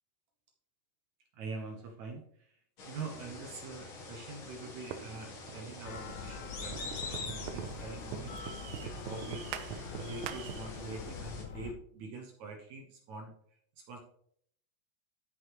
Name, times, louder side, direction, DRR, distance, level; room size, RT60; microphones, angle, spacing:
voice 1, 1.3-2.6 2.8-13.3 13.9-14.0, right 4 dB, 70° right, 2 dB, 2.0 m, -45 dB
sound 1, 2.8-11.4, left 3 dB, 50° left, 1.8 m, -45 dB
sound 2, 4.9-10.8, right 10 dB, 85° right, 2.4 m, -44 dB
sound 3, 5.9-11.7, left 6 dB, 75° left, 2.1 m, -45 dB
13.5 x 5.1 x 3.0 m, 0.66 s
omnidirectional pair, 4.0 m